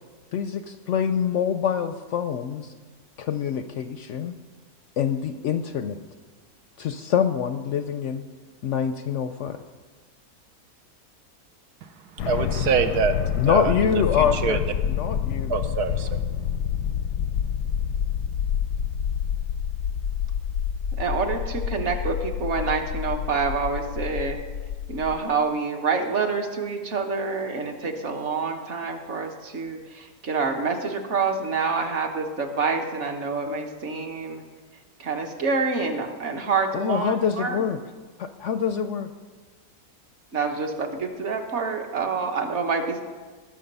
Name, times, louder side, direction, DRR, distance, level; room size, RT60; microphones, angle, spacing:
voice 1, 0.3-2.7 3.2-4.4 5.0-6.0 6.8-8.2 8.6-9.6 13.4-14.6 14.9-15.5 36.7-37.8 38.2-39.1, left 8 dB, 70° left, 9 dB, 0.7 m, -25 dB
sound 1, 12.2-25.2, left 8 dB, 90° left, 1.2 m, -28 dB
voice 2, 12.3-13.1 13.5-14.0 14.4-14.6 15.5-16.1, right 6 dB, 90° right, 9 dB, 1.4 m, -24 dB
voice 3, 21.0-24.4 24.9-34.4 35.0-37.6 40.3-43.0, right 4 dB, 50° right, 4 dB, 1.4 m, -27 dB
19.0 x 6.5 x 5.4 m, 1.4 s
omnidirectional pair, 1.7 m